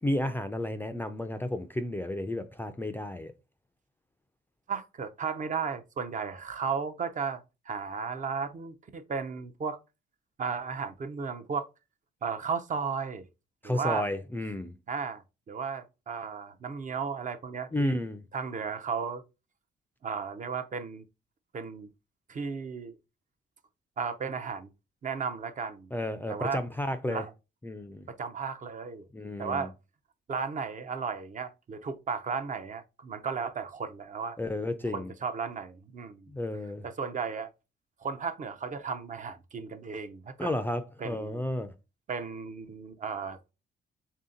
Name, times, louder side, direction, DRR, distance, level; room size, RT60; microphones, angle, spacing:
voice 1, 0.0-3.3 13.6-14.7 17.7-18.2 25.9-27.2 27.6-28.1 29.1-29.7 34.4-35.1 36.3-36.9 40.4-41.7, left 1 dB, 10° left, 0.4 m, -32 dB
voice 2, 4.7-9.8 10.4-11.7 12.2-13.2 13.6-14.1 14.9-18.0 18.3-19.2 20.0-21.0 21.5-21.9 22.3-23.0 24.0-24.7 25.0-25.9 26.3-26.6 27.1-27.3 28.1-29.0 29.4-29.7 30.3-34.4 34.9-36.3 36.8-37.5 38.0-40.5 41.0-41.4 42.1-43.5, right 5 dB, 40° right, 0.6 m, -34 dB
3.4 x 2.7 x 3.7 m
cardioid pair, 90°, 20 cm